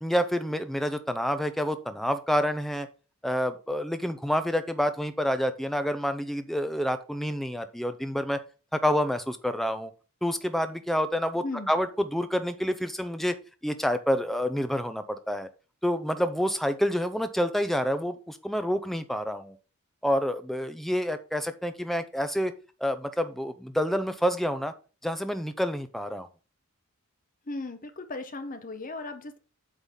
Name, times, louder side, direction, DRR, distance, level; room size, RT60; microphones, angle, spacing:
voice 1, 0.0-2.9 3.2-8.4 8.7-9.9 10.2-13.4 13.6-15.5 15.8-19.6 20.0-22.5 22.8-24.7 25.0-26.3, equal, ahead, 9 dB, 0.6 m, -28 dB
voice 2, 27.5-29.4, left 2 dB, 35° left, 9 dB, 0.9 m, -36 dB
8.2 x 4.0 x 5.6 m, 0.35 s
head